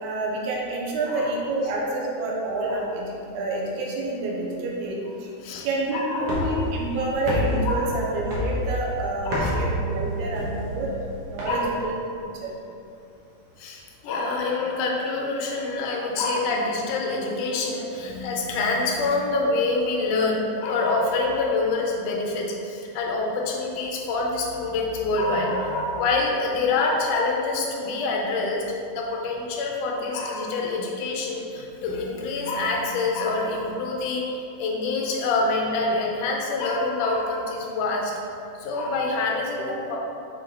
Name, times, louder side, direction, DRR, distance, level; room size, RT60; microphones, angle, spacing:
voice 1, 0.0-5.3 5.6-10.9 11.3-11.9 12.2-12.5 39.6-39.7, right 2 dB, 75° right, -2 dB, 2.1 m, -28 dB
voice 2, 5.9-6.6 7.7-8.0 9.3-9.7 11.5-11.9 13.6-38.1 38.6-40.0, left 3 dB, 80° left, -1 dB, 2.3 m, -26 dB
sound 1, 6.2-11.9, equal, 60° right, 1.9 m, -29 dB
7.6 x 3.8 x 3.8 m, 2.7 s
omnidirectional pair, 3.7 m